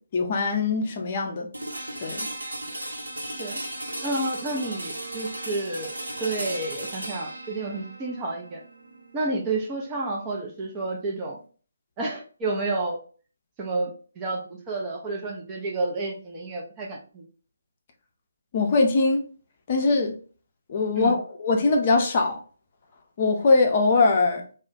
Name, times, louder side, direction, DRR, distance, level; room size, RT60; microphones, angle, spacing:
voice 1, 0.1-1.5 2.0-2.3 18.5-19.2 19.7-20.1 20.7-22.4 23.2-24.4, left 3 dB, 35° left, 0.5 m, -22 dB
sound 1, 1.5-11.4, right 1 dB, 75° right, 0.8 m, -36 dB
voice 2, 4.0-5.9 6.2-8.6 9.1-11.4 12.0-13.0 13.6-14.4 14.7-17.2 21.0-21.1, right 2 dB, 20° right, 0.5 m, -30 dB
2.3 x 2.1 x 3.7 m
figure-of-eight pair, 145°, 0 cm